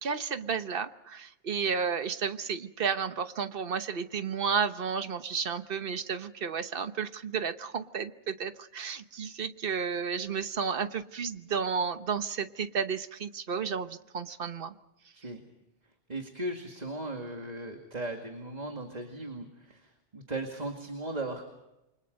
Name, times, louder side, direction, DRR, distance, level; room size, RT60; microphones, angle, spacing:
voice 1, 0.0-14.7, right 6 dB, 55° right, 10 dB, 1.2 m, -32 dB
voice 2, 16.1-21.5, right 2 dB, 35° right, 3 dB, 2.3 m, -37 dB
28.5 x 24.5 x 5.3 m, 0.90 s
omnidirectional pair, 1.2 m